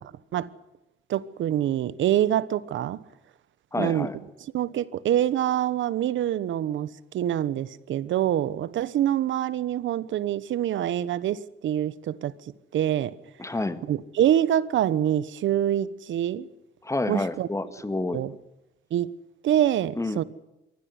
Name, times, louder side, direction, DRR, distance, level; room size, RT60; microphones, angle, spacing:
voice 1, 1.1-3.0 3.8-4.1 4.5-12.3 12.7-13.1 13.9-16.5 17.1-17.5 18.1-18.3 18.9-19.1 19.4-20.2, right 11 dB, 75° right, 1.2 m, -25 dB
voice 2, 3.7-4.2 13.4-13.8 16.8-18.2 20.0-20.2, left 2 dB, 15° left, 1.9 m, -29 dB
23.5 x 16.5 x 9.7 m
cardioid pair, 90°, 20 cm